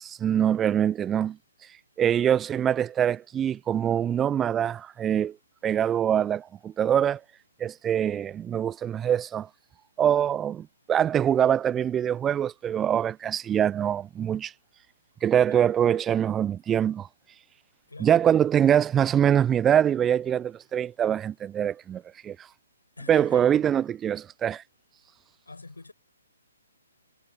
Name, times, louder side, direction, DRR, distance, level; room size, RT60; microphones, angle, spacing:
voice 1, 0.0-1.4 2.0-5.4 5.6-7.2 7.6-9.5 10.0-14.5 15.2-17.1 18.0-22.5 23.1-24.6, right 9 dB, 15° right, 0.6 m, -24 dB
voice 2, 17.9-18.4 23.0-23.6 25.4-25.9, left 3 dB, 80° left, 6.2 m, -45 dB
figure-of-eight pair, 135°, 0 cm